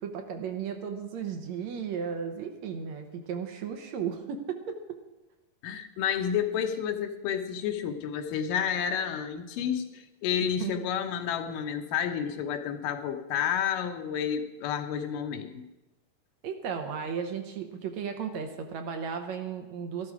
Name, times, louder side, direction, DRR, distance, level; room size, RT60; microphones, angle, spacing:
voice 1, 0.0-5.0 10.4-10.7 16.4-20.1, right 7 dB, 70° right, 5 dB, 2.1 m, -35 dB
voice 2, 5.6-15.7, left 8 dB, 85° left, 6 dB, 2.6 m, -30 dB
14.0 x 12.0 x 4.8 m, 1.0 s
omnidirectional pair, 3.7 m